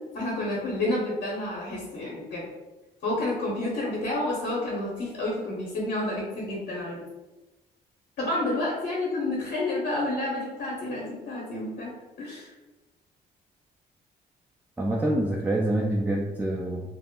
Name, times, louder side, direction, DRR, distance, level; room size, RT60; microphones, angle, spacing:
voice 1, 0.1-2.4 3.0-7.0 8.2-12.5, left 2 dB, 70° left, -5 dB, 0.8 m, -30 dB
voice 2, 14.8-16.8, right 1 dB, 10° right, -1 dB, 0.3 m, -26 dB
2.1 x 2.0 x 3.5 m, 1.1 s
supercardioid pair, 70°, 18 cm